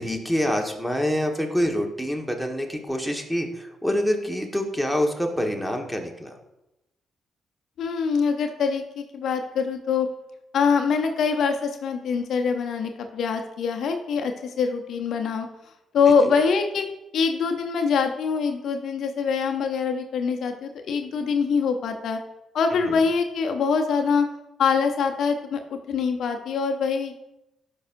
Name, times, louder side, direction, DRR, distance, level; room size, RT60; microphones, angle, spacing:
voice 1, 0.0-6.3 22.8-23.0, equal, ahead, 3 dB, 1.5 m, -26 dB
voice 2, 7.8-10.1 10.5-15.5 15.9-16.8 17.1-22.2 22.5-24.3 24.6-27.3, left 5 dB, 70° left, 5 dB, 0.7 m, -24 dB
12.5 x 5.4 x 2.6 m, 0.90 s
supercardioid pair, 50°, 0 cm